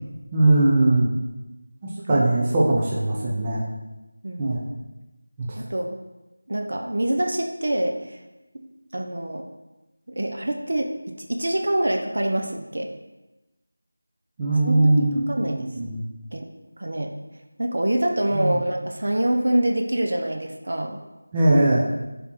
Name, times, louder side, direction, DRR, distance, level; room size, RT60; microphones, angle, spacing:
voice 1, 0.3-1.1 2.1-3.6 4.4-4.6 5.4-5.5 14.4-16.0 18.3-18.6 21.3-21.8, right 2 dB, 15° right, -5 dB, 0.7 m, -20 dB
voice 2, 4.2-4.6 5.6-6.0 6.5-8.2 8.5-9.4 10.1-12.9 14.7-15.7 16.3-16.5 16.8-17.1 17.6-21.0, right 1 dB, 60° right, 4 dB, 0.8 m, -26 dB
7.1 x 3.7 x 4.6 m, 1.0 s
figure-of-eight pair, 175°, 0 cm